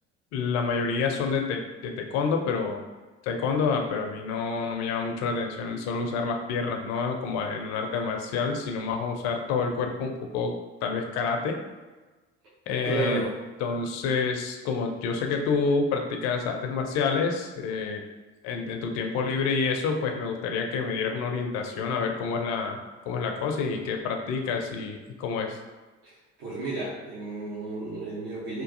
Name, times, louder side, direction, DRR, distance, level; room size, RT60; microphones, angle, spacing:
voice 1, 0.3-2.8 3.2-10.5 10.8-11.6 12.7-13.3 13.6-18.0 18.4-22.8 23.1-25.6, left 5 dB, 50° left, 3 dB, 0.5 m, -28 dB
voice 2, 12.8-13.3 26.0-26.1 26.4-28.6, right 2 dB, 55° right, -8 dB, 0.9 m, -32 dB
3.0 x 2.5 x 2.5 m, 1.2 s
figure-of-eight pair, 55°, 36 cm